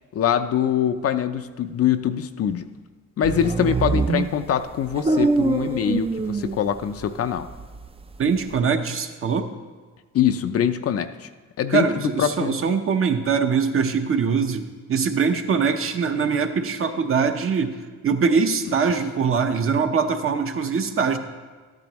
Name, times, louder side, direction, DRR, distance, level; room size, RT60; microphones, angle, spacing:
voice 1, 0.1-2.7 3.2-7.5 10.1-11.3 11.6-12.7, left 9 dB, 50° left, 10 dB, 0.5 m, -23 dB
sound 1, 3.2-7.0 7.4-8.6, right 3 dB, 20° right, 0.5 m, -24 dB
voice 2, 8.2-9.5 11.7-17.8 18.0-21.2, right 5 dB, 45° right, 6 dB, 0.9 m, -22 dB
12.5 x 10.5 x 3.0 m, 1.4 s
cardioid pair, 90°, 30 cm